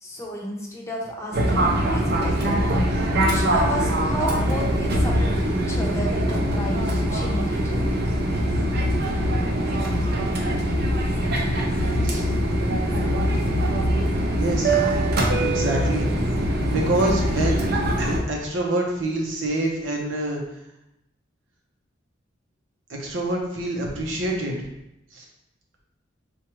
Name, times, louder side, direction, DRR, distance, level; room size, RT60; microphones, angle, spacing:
voice 1, 0.0-2.6 2.9-7.9, equal, 15° left, -3 dB, 0.6 m, -32 dB
Fixed-wing aircraft airplane, 1.3-18.2, right 1 dB, 60° right, 0.6 m, -22 dB
voice 2, 14.4-14.8 15.4-16.1 16.7-17.7 18.0-20.4 22.9-24.7 25.1-25.2, right 1 dB, 85° right, -1 dB, 0.8 m, -26 dB
4.6 x 2.4 x 3.0 m, 0.86 s
head